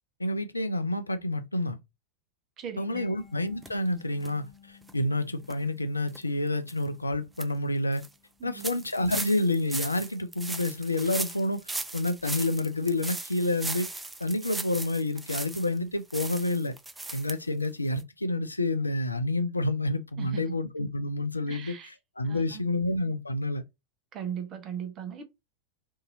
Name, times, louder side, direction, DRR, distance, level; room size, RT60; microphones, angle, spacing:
voice 1, 0.2-1.8 2.8-8.0 8.4-11.6 11.9-13.9 14.2-16.7 17.1-21.7 22.2-23.6, left 2 dB, 80° left, 0.4 m, -29 dB
voice 2, 2.6-3.1 8.4-8.8 20.2-20.5 21.5-21.9 22.2-22.7 24.1-25.2, right 9 dB, 30° right, 0.8 m, -39 dB
Mallet percussion, 3.0-9.7, left 7 dB, 10° left, 1.3 m, -57 dB
sound 1, 3.6-3.7 4.2-4.3 4.8-4.9 5.4-5.5 6.1-6.2 6.7-6.8 7.1-7.4 7.9-8.1 8.6-15.8 16.1-17.3 17.6-17.7 18.0-18.1, right 2 dB, 10° right, 0.4 m, -37 dB
2.7 x 2.6 x 3.8 m
figure-of-eight pair, 90°, 0 cm